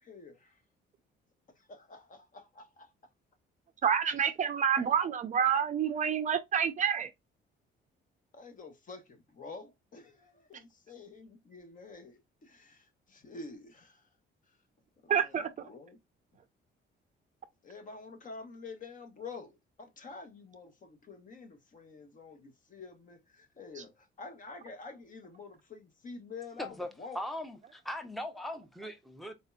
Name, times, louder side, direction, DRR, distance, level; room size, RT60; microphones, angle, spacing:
voice 1, 0.0-0.6 1.6-2.9 8.3-14.1 15.0-16.0 17.6-27.2, left 4 dB, 45° left, 1.0 m, -48 dB
voice 2, 3.8-7.1 15.1-15.7, right 8 dB, 40° right, 0.5 m, -28 dB
voice 3, 26.6-26.9 27.1-29.3, left 1 dB, ahead, 0.7 m, -39 dB
4.2 x 2.6 x 2.3 m
cardioid pair, 125°, 19 cm